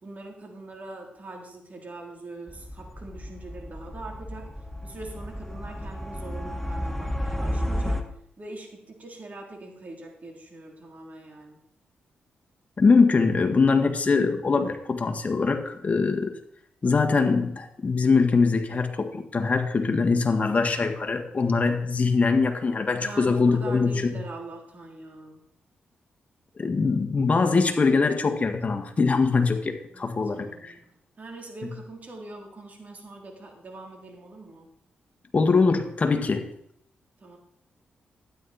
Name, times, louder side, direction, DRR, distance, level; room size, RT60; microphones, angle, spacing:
voice 1, 0.0-4.5 4.8-8.0 8.4-11.6 23.0-25.4 29.9-30.8 31.2-34.7 37.2-37.4, right 2 dB, 45° right, 1 dB, 3.4 m, -42 dB
sound 1, 2.5-8.0, equal, 10° left, 1.3 m, -32 dB
voice 2, 12.8-16.4 16.8-24.2 26.6-30.7 35.3-36.5, left 4 dB, 40° left, 5 dB, 1.8 m, -22 dB
12.5 x 9.6 x 4.3 m, 0.74 s
cardioid pair, 60°, 4 cm